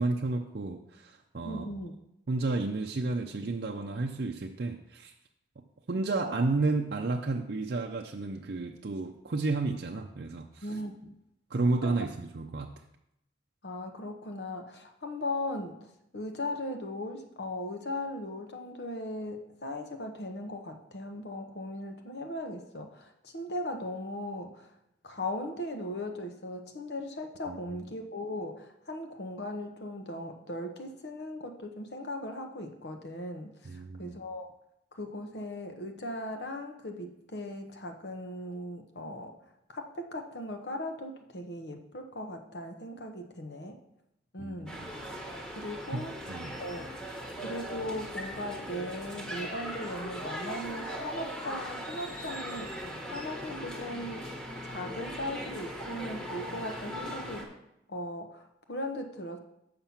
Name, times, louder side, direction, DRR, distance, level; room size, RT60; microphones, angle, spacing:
voice 1, 0.0-1.7 2.3-5.1 5.9-10.8 11.5-12.7 27.5-27.6 33.6-34.2 44.4-44.9 45.9-46.6, right 3 dB, 60° right, 2 dB, 0.5 m, -32 dB
voice 2, 1.4-1.9 10.6-11.1 11.8-12.0 13.6-15.9 16.1-24.7 25.0-34.5 34.9-39.3 39.7-43.8 44.3-44.8 45.6-46.1 46.6-46.9 47.4-52.7 53.1-54.3 54.6-57.5 57.9-59.4, left 1 dB, 70° left, 5 dB, 1.0 m, -38 dB
sound 1, 44.7-57.4, equal, 5° left, 1.3 m, -39 dB
7.3 x 5.8 x 5.8 m, 0.82 s
head